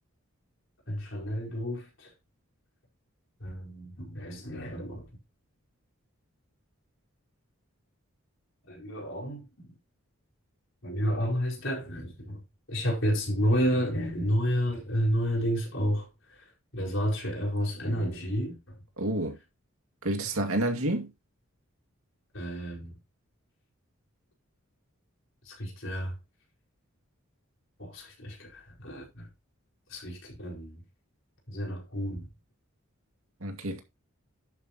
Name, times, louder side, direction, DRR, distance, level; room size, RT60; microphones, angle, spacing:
voice 1, 0.9-2.1 3.4-5.1 8.7-9.8 10.8-12.4 12.7-16.5 16.7-18.8 22.3-22.9 25.4-26.2 27.8-29.3 29.9-30.8 31.5-32.3, equal, 65° left, 4.6 m, -31 dB
voice 2, 19.0-19.4 20.0-21.1 33.4-33.8, right 1 dB, 80° right, 2.4 m, -29 dB
11.0 x 8.6 x 3.0 m
head